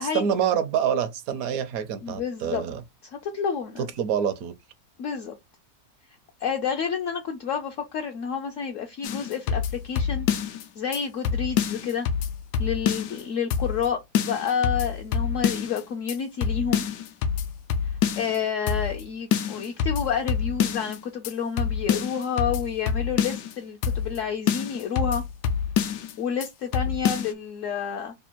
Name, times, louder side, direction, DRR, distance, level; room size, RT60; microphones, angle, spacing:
voice 1, 0.0-2.8 3.8-4.5, right 8 dB, 70° right, 1.0 m, -26 dB
voice 2, 2.0-2.6 3.0-3.8 5.0-5.4 6.4-10.3 10.8-12.1 12.6-16.9 18.1-25.2 26.2-28.1, left 7 dB, 65° left, 0.8 m, -29 dB
sound 1, 9.0-10.6 10.9-11.0 11.2-13.2 13.5-13.9 14.1-15.8 16.1-16.2 16.4-18.4 18.7-19.0 19.3-21.0 21.2-21.3 21.6-23.5 23.8-24.2 24.5-26.1 26.4-26.5 26.7-27.3, left 7 dB, 85° left, 1.1 m, -26 dB
3.4 x 2.3 x 4.3 m
omnidirectional pair, 1.7 m